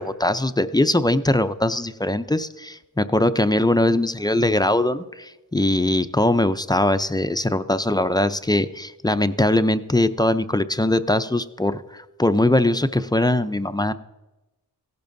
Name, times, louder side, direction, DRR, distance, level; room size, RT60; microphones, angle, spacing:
voice 1, 0.0-13.9, left 1 dB, 10° left, 11 dB, 0.4 m, -21 dB
16.5 x 12.0 x 2.6 m, 1.1 s
wide cardioid pair, 80°, 38 cm